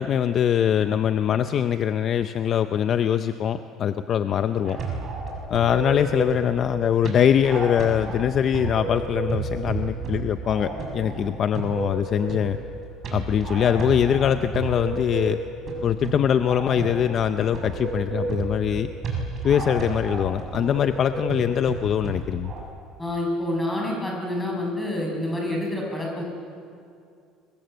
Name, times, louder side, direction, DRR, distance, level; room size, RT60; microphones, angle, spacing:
voice 1, 0.0-4.8 5.5-12.6 13.1-15.4 15.8-18.9 19.4-22.5, left 9 dB, 40° left, 9 dB, 0.7 m, -23 dB
sound 1, 4.6-22.6, right 3 dB, 35° right, 6.3 m, -32 dB
voice 2, 23.0-26.2, left 1 dB, 5° left, -1 dB, 6.6 m, -27 dB
29.5 x 22.5 x 7.9 m, 2.4 s
cardioid pair, 155°, 0 cm